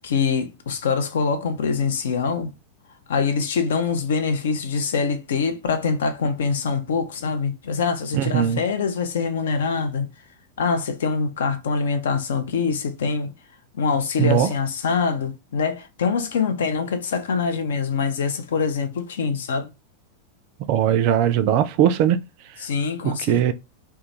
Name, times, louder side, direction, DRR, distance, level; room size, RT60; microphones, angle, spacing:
voice 1, 0.0-2.5 3.1-10.1 10.6-13.3 13.7-19.7 22.6-23.4, left 5 dB, 60° left, 0.4 m, -24 dB
voice 2, 8.1-8.6 14.2-14.5 20.7-22.2 23.0-23.5, right 10 dB, 45° right, 0.3 m, -19 dB
2.2 x 2.2 x 2.8 m
figure-of-eight pair, 90°, 0 cm